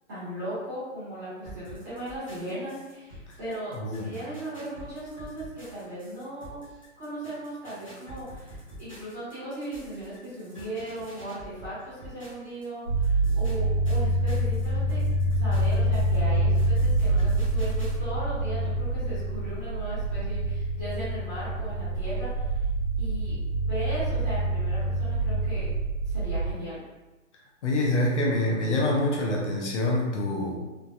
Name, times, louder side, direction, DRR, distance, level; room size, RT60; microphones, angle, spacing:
voice 1, 0.1-6.5 7.0-15.0 15.3-22.5 23.0-25.7 26.0-26.8, right 1 dB, 15° right, -15 dB, 0.8 m, -37 dB
sound 1, 1.4-12.7 13.0-18.0, equal, 25° left, 0.4 m, -47 dB
voice 2, 3.7-4.2 27.6-30.5, left 1 dB, 60° left, -2 dB, 0.7 m, -26 dB
sound 2, 12.9-26.5, right 1 dB, 70° right, 1.0 m, -26 dB
3.2 x 2.1 x 2.5 m, 1.1 s
hypercardioid pair, 175°, 40 cm